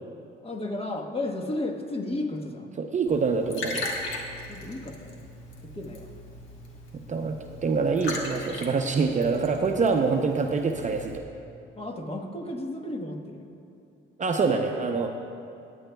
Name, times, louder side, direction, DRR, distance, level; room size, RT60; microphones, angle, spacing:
voice 1, 0.4-2.7 4.5-5.2 5.7-6.1 11.7-13.5 14.4-14.7, left 2 dB, 30° left, 3 dB, 1.3 m, -33 dB
voice 2, 2.8-3.9 6.9-11.2 14.2-15.1, right 4 dB, 40° right, 3 dB, 0.7 m, -25 dB
Liquid, 3.1-11.2, left 2 dB, 85° left, 1.4 m, -39 dB
19.0 x 9.1 x 2.3 m, 2.7 s
cardioid pair, 90°, 20 cm